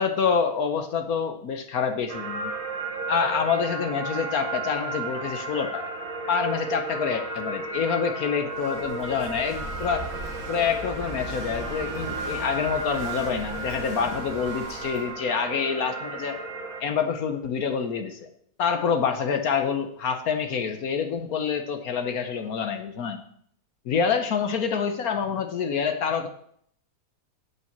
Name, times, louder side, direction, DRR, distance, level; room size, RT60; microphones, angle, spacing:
voice 1, 0.0-2.5 3.1-5.9 6.3-10.1 10.5-16.4 16.8-18.3 18.6-23.2 23.8-26.3, left 6 dB, 65° left, 7 dB, 1.2 m, -27 dB
soundscape from layered piano degraded, 2.1-16.8, right 3 dB, 25° right, 0.9 m, -34 dB
Walk footsteps / Wind / Waves surf, 8.5-15.1, right 1 dB, 70° right, 4.0 m, -39 dB
9.6 x 5.6 x 7.3 m, 0.66 s
omnidirectional pair, 1.8 m